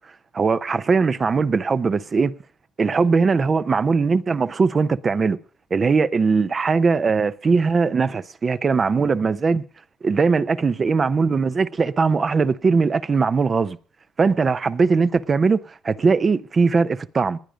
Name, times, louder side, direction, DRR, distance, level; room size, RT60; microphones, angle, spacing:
voice 1, 0.3-2.3 2.8-5.4 5.7-9.6 10.0-13.8 14.2-17.4, right 4 dB, 30° right, 0.6 m, -20 dB
19.5 x 10.0 x 5.0 m
cardioid pair, 120°, 0 cm